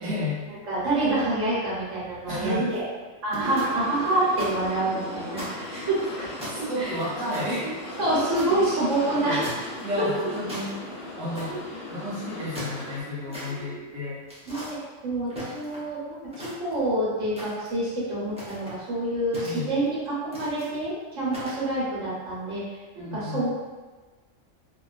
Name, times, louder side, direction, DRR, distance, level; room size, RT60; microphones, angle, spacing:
voice 1, 0.0-0.6 2.3-2.8 3.4-3.6 6.0-6.1 6.5-9.4 9.8-11.6 11.9-14.2 19.4-19.8 23.0-23.5, left 1 dB, 85° right, -9 dB, 1.2 m, -32 dB
voice 2, 0.7-2.8 3.2-6.3 6.8-6.9 8.0-9.5 10.0-10.1 11.5-11.6 13.2-13.9 14.5-14.8 15.0-22.6 22.9-23.5, right 1 dB, 70° right, -8 dB, 1.3 m, -27 dB
sound 1, 2.4-2.8 3.3-4.5 4.9-5.0 5.3-6.0 6.4-8.5 9.4-9.8 10.1-10.7 11.3-11.7 12.3-13.5 14.3-14.7 15.3-15.9 16.3-16.9 17.4-17.8 18.3-18.8 19.3-19.9 20.3-20.7 21.3-21.7, equal, 10° right, 0.5 m, -39 dB
sound 2, 3.4-13.0, left 2 dB, 55° left, 0.6 m, -38 dB
2.8 x 2.3 x 2.3 m, 1.3 s
omnidirectional pair, 1.4 m